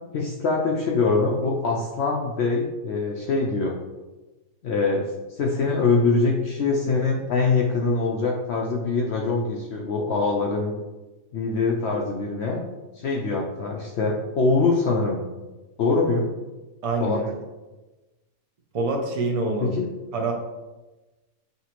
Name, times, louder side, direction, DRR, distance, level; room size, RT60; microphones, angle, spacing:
voice 1, 0.1-3.7 4.6-5.1 5.4-10.7 11.3-12.6 12.9-15.2 15.8-16.3 17.0-17.2 19.6-19.9, left 3 dB, 65° left, -1 dB, 0.7 m, -23 dB
voice 2, 16.8-17.2 18.7-19.7 20.1-20.3, right 3 dB, 45° right, 1 dB, 0.4 m, -25 dB
5.6 x 2.9 x 2.9 m, 1.1 s
omnidirectional pair, 1.5 m